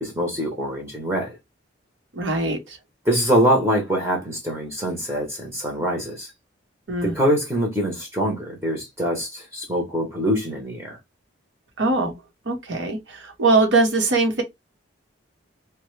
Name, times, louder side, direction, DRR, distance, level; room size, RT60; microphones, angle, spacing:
voice 1, 0.0-1.4 3.0-6.3 7.0-11.0, equal, 15° right, 0.8 m, -24 dB
voice 2, 2.1-2.8 6.9-7.2 11.8-12.1 12.5-14.4, right 3 dB, 75° right, 0.9 m, -21 dB
2.9 x 2.2 x 3.1 m
head